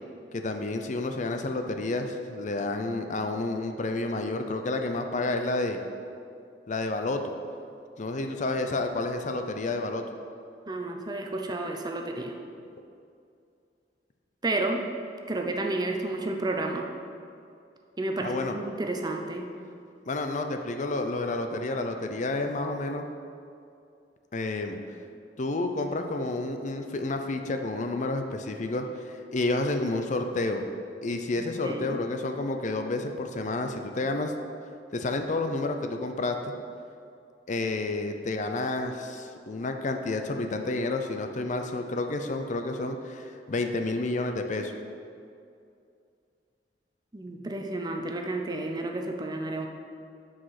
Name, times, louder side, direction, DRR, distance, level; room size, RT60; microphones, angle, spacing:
voice 1, 0.3-5.8 6.7-7.3 8.0-10.0 18.2-18.6 20.1-23.1 24.3-24.8 25.4-30.6 31.0-34.3 34.9-36.4 37.5-44.7, left 2 dB, 45° left, 6 dB, 0.6 m, -30 dB
voice 2, 10.7-12.3 14.4-14.9 15.3-16.9 18.0-19.5 31.6-32.0 47.1-49.7, right 2 dB, 25° right, 2 dB, 0.7 m, -31 dB
8.6 x 5.0 x 5.8 m, 2.4 s
head